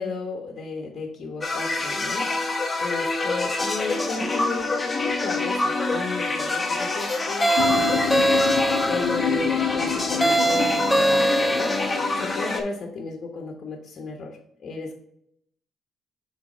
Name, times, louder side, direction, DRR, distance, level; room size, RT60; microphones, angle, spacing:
voice 1, 0.0-15.0, left 3 dB, 55° left, 0 dB, 1.2 m, -34 dB
sound 1, 1.4-12.6, left 2 dB, 25° left, 1.2 m, -26 dB
sound 2, 7.4-9.2 10.2-12.0, right 1 dB, ahead, 0.6 m, -22 dB
sound 3, 7.6-12.5, left 8 dB, 85° left, 0.4 m, -28 dB
6.3 x 4.0 x 3.9 m, 0.75 s
cardioid pair, 90°, 0 cm